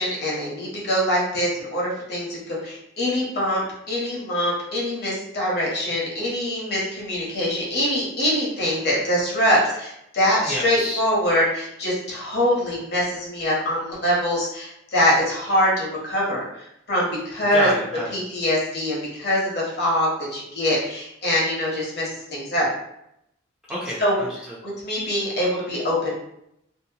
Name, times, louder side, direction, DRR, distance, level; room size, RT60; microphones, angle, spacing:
voice 1, 0.0-3.6 3.9-17.7 18.1-22.7 24.0-24.2 24.6-26.1, equal, 50° left, -4 dB, 0.9 m, -23 dB
voice 2, 10.4-11.0 17.5-18.1 23.7-24.6, equal, 5° right, -8 dB, 0.5 m, -30 dB
2.6 x 2.1 x 2.7 m, 0.79 s
head